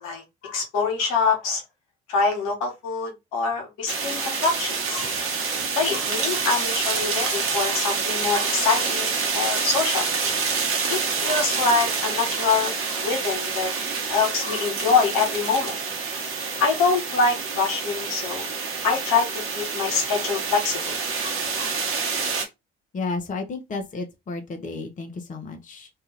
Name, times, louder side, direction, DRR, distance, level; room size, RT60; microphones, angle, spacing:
voice 1, 0.0-1.6 2.1-5.1 5.8-10.1 10.9-12.7 13.0-13.8 14.1-15.8 16.6-18.4 18.8-19.3 19.5-20.9 21.2-21.7, left 4 dB, 70° left, 1.2 m, -25 dB
sound 1, 3.9-22.5, right 5 dB, 50° right, 1.0 m, -27 dB
voice 2, 22.9-25.9, left 3 dB, 25° left, 0.7 m, -32 dB
2.7 x 2.3 x 3.0 m
hypercardioid pair, 50°, 29 cm